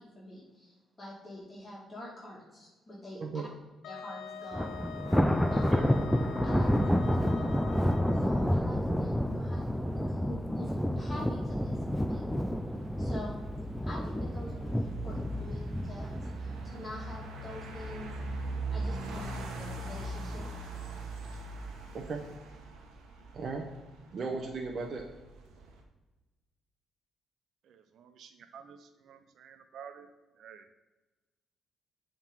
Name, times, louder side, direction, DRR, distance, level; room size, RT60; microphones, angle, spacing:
voice 1, 0.0-3.4 3.9-4.9 5.5-6.0 6.4-7.4 8.2-12.3 13.0-13.5 13.8-18.1 18.7-20.6, left 1 dB, 30° left, 2.3 m, -46 dB
Wind instrument woodwind instrument, 3.8-8.5, left 8 dB, 75° left, 0.5 m, -45 dB
Thunder, 4.5-17.8 18.2-18.5 18.9-19.0 19.9-20.4, equal, 5° left, 0.5 m, -30 dB
sound 1, 11.3-25.8, right 2 dB, 85° right, 1.2 m, -41 dB
voice 2, 23.3-23.7 24.1-25.0, right 4 dB, 50° right, 0.9 m, -36 dB
voice 3, 27.6-30.1 30.4-30.7, right 7 dB, 70° right, 0.5 m, -51 dB
7.2 x 3.8 x 5.4 m
cardioid pair, 90°, 0 cm